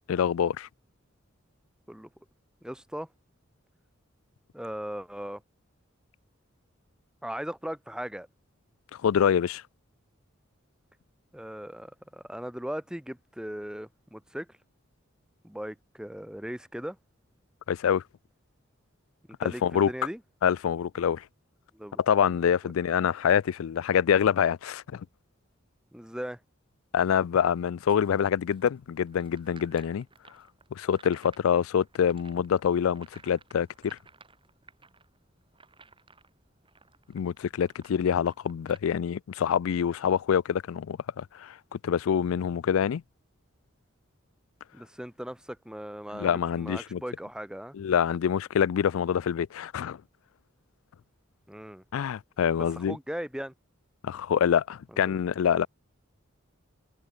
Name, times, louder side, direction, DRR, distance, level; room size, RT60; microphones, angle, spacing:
voice 1, 0.1-0.7 9.0-9.6 17.7-18.0 19.4-19.9 20.4-21.2 22.0-25.0 26.9-30.0 30.7-34.0 37.1-43.0 46.1-47.0 47.7-50.0 51.9-53.0 54.0-55.7, left 8 dB, 80° left, 0.4 m, -26 dB
voice 2, 2.6-3.1 4.5-5.4 7.2-8.3 11.3-14.6 15.4-17.0 19.4-20.2 21.7-22.0 25.9-26.4 44.7-47.8 51.5-51.8 52.6-53.5 55.0-55.2, equal, 5° right, 0.9 m, -38 dB
sound 1, 27.9-38.8, right 4 dB, 25° right, 5.6 m, -58 dB
head